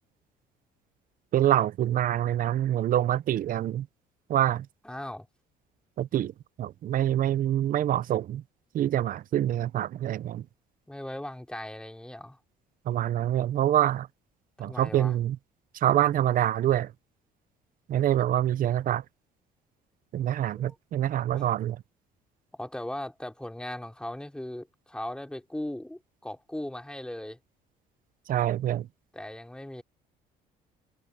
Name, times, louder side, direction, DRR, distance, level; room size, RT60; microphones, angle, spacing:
voice 1, 1.3-3.9 4.3-4.7 6.0-6.3 6.6-8.4 8.7-10.5 12.8-14.1 14.6-15.4 15.7-16.9 17.9-19.0 20.1-21.8 28.3-28.9, right 12 dB, 55° right, 0.7 m, -26 dB
voice 2, 4.8-5.3 10.9-12.4 14.6-15.1 20.6-20.8 21.3-21.5 22.6-27.4 29.1-29.8, left 1 dB, 5° left, 3.3 m, -38 dB
cardioid pair, 110°, 17 cm